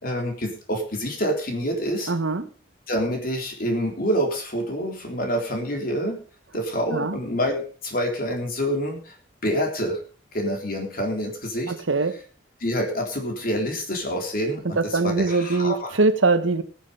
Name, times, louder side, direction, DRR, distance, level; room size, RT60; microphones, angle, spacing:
voice 1, 0.0-2.1 2.9-6.2 6.5-9.1 9.4-10.0 10.3-11.7 12.6-16.0, equal, 50° left, 3.6 m, -27 dB
voice 2, 2.1-2.5 6.9-7.2 11.7-12.2 14.8-16.6, right 3 dB, 80° right, 1.0 m, -22 dB
18.5 x 7.5 x 5.2 m
head